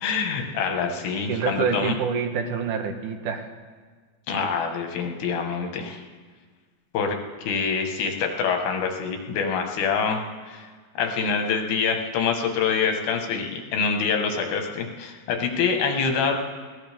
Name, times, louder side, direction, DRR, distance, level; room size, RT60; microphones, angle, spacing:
voice 1, 0.0-1.9 4.3-6.0 6.9-10.2 10.5-10.7 11.0-16.3, left 5 dB, 85° left, 3 dB, 3.4 m, -25 dB
voice 2, 1.3-3.5 4.4-4.5, right 6 dB, 65° right, 5 dB, 2.4 m, -27 dB
20.5 x 17.5 x 3.5 m, 1.5 s
omnidirectional pair, 4.2 m